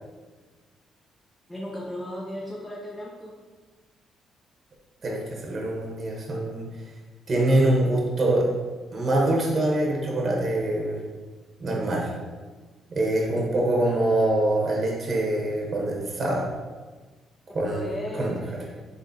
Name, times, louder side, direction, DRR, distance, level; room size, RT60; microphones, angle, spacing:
voice 1, 1.5-3.3 17.5-18.9, left 1 dB, 10° left, -3 dB, 0.6 m, -36 dB
voice 2, 5.0-6.7 7.3-8.5 8.9-11.0 11.6-12.1 12.9-16.5 17.5-18.4, right 1 dB, 40° right, -2 dB, 0.9 m, -24 dB
3.8 x 3.6 x 2.7 m, 1.3 s
cardioid pair, 90°, 0 cm